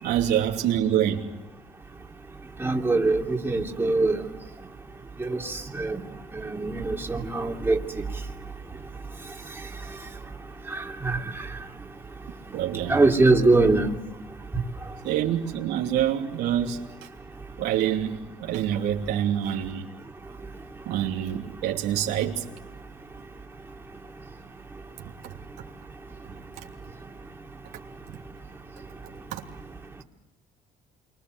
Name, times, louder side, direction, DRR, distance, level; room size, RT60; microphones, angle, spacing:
voice 1, 0.0-1.2 12.5-13.0 15.0-16.8 17.6-19.8 20.9-22.4 29.3-29.4, right 10 dB, 85° right, 1 dB, 3.0 m, -26 dB
voice 2, 2.6-4.2 5.2-5.4 5.8-6.0 6.5-7.8 10.7-11.2 12.9-13.9, right 3 dB, 15° right, 0 dB, 3.1 m, -22 dB
28.0 x 24.5 x 8.1 m, 1.0 s
cardioid pair, 110°, 17 cm